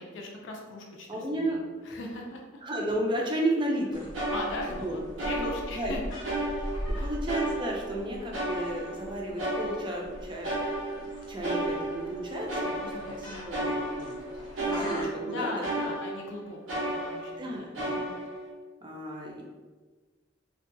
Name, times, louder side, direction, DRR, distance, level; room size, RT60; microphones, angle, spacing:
voice 1, 0.0-2.6 4.3-6.0 7.0-7.1 12.8-13.5 15.3-18.1, left 2 dB, 70° left, 0 dB, 0.4 m, -39 dB
voice 2, 1.1-1.6 2.6-4.1 4.8-5.0 5.4-5.9 6.9-10.5 10.9-14.2 14.6-15.6 16.2-16.3 17.4-18.0 18.8-19.4, right 1 dB, 25° right, -1 dB, 0.4 m, -33 dB
sound 1, 3.8-3.9 4.1-5.9 6.2-7.0 7.3-10.1 10.4-16.3 16.7-17.4 17.7-18.5, right 1 dB, 85° right, 0.6 m, -33 dB
sound 2, 3.9-15.1, equal, 20° left, 0.6 m, -41 dB
2.6 x 2.2 x 2.6 m, 1.4 s
head